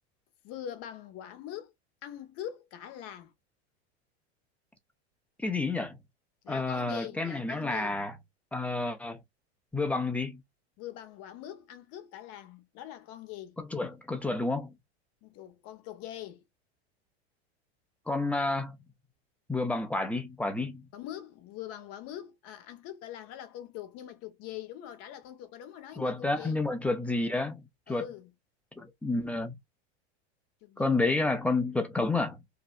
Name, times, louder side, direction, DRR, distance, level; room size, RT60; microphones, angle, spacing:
voice 1, 0.4-1.7 2.0-3.3 6.4-8.0 10.8-13.6 15.2-16.4 20.9-26.6 27.9-28.3 30.6-31.3, left 11 dB, 45° left, 0.8 m, -43 dB
voice 2, 5.4-6.0 6.5-8.1 8.5-9.2 9.7-10.4 13.6-14.7 18.1-18.8 19.5-20.9 26.0-28.1 28.8-29.6 30.8-32.4, left 2 dB, 5° left, 0.4 m, -30 dB
2.7 x 2.0 x 2.4 m
hypercardioid pair, 110°, 34 cm